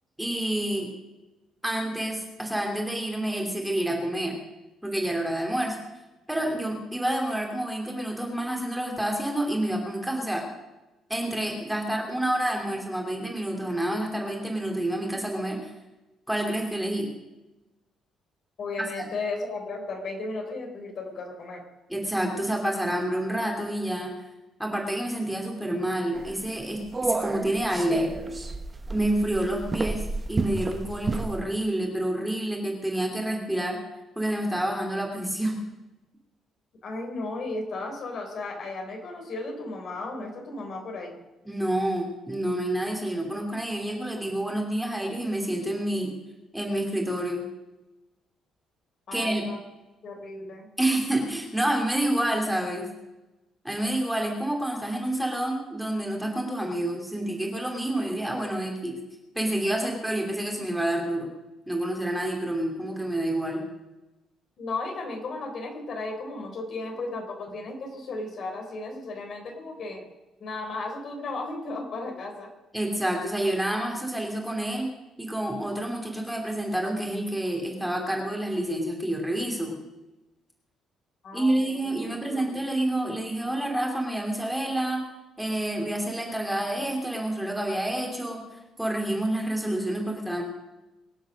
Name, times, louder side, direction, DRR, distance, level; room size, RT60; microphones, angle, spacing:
voice 1, 0.2-0.9 1.6-4.4 4.8-5.8 6.3-10.4 11.1-15.7 16.3-17.1 19.0-19.1 21.9-24.1 24.6-28.1 28.9-33.8 34.2-35.6 41.5-46.1 46.5-47.4 49.1-49.4 50.8-52.9 53.6-59.0 59.3-61.3 61.7-63.6 72.7-74.9 75.2-79.7 81.3-85.0 85.4-90.4, right 1 dB, ahead, 0 dB, 2.7 m, -28 dB
voice 2, 18.6-21.6 36.8-41.1 49.1-49.6 50.0-50.7 64.6-70.1 70.4-72.5 81.2-82.5, left 3 dB, 50° left, 3 dB, 3.6 m, -35 dB
sound 1, 26.1-31.4, right 3 dB, 20° right, 1.1 m, -31 dB
23.5 x 7.9 x 6.5 m, 1.1 s
cardioid pair, 150°, 0 cm